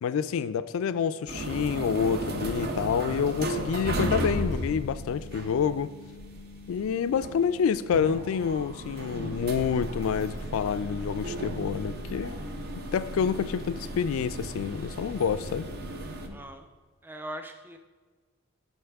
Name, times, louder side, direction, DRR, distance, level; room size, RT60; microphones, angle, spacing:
voice 1, 0.0-5.9 6.7-12.4 12.7-15.7, left 7 dB, 75° left, 0.3 m, -28 dB
sound 1, 1.3-16.3, right 1 dB, 45° right, 0.7 m, -35 dB
voice 2, 16.3-16.7 17.0-17.8, right 1 dB, 10° right, 0.4 m, -40 dB
11.0 x 4.6 x 3.4 m
head